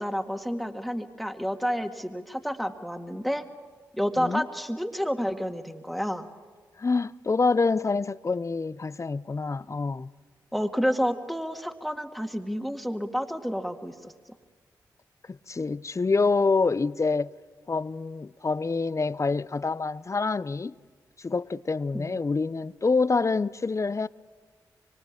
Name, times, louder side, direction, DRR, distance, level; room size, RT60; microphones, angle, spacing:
voice 1, 0.0-3.4 3.9-6.3 10.5-14.1 21.9-22.1, equal, ahead, 1.9 m, -30 dB
voice 2, 6.8-10.1 15.3-17.3 17.7-20.7 21.2-24.1, left 4 dB, 35° left, 0.6 m, -26 dB
24.5 x 24.5 x 7.4 m
supercardioid pair, 40°, 8 cm